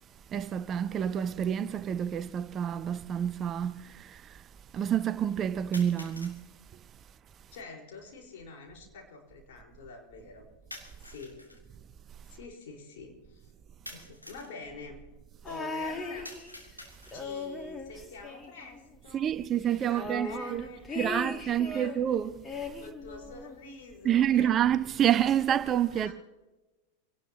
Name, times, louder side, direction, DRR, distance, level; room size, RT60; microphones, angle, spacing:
voice 1, 0.3-4.4 4.7-6.4 19.1-20.7 21.0-22.4 24.0-26.1, right 10 dB, 25° right, 0.6 m, -28 dB
sound 1, 5.7-6.4 10.7-11.6 13.9-14.6 16.2-17.4, left 1 dB, 90° left, 2.9 m, -47 dB
voice 2, 7.5-10.5 11.0-11.5 12.2-13.5 13.9-15.0 15.4-16.3 17.1-19.3 19.9-21.9 22.8-24.6 25.9-26.1, left 4 dB, 55° left, 4.7 m, -46 dB
sound 2, 15.5-16.7 17.1-19.0 19.2-19.3 19.6-22.0 22.4-23.7 24.6-24.7, left 3 dB, 15° left, 2.1 m, -38 dB
26.0 x 18.5 x 3.0 m
figure-of-eight pair, 90°, 0 cm